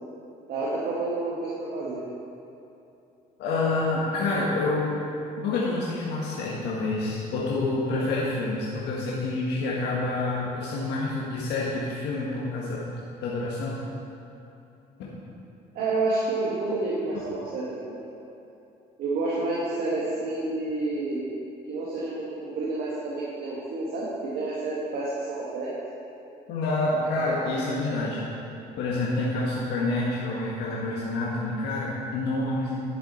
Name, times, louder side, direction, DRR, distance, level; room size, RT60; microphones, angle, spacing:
voice 1, 0.5-2.0 15.8-18.0 19.0-21.3 21.7-25.8, right 2 dB, 65° right, -7 dB, 1.7 m, -29 dB
voice 2, 3.4-5.0 5.4-13.0 13.2-13.8 15.0-15.1 26.5-28.2 28.8-32.8, left 2 dB, 80° left, -5 dB, 1.5 m, -28 dB
11.0 x 7.1 x 4.3 m, 2.8 s
cardioid pair, 110°, 17 cm